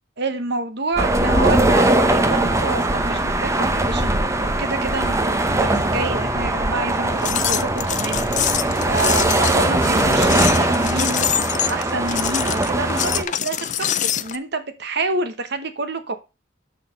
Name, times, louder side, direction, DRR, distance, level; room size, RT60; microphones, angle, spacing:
voice 1, 0.2-8.3 8.8-13.6 14.0-16.2, right 3 dB, 60° right, 9 dB, 1.2 m, -28 dB
sound 1, 0.9-8.4, left 1 dB, 5° left, 1.4 m, -43 dB
sound 2, 1.0-13.2, right 2 dB, 15° right, 0.8 m, -20 dB
sound 3, 7.0-14.4, left 10 dB, 40° left, 0.4 m, -25 dB
6.5 x 5.8 x 5.2 m, 0.28 s
head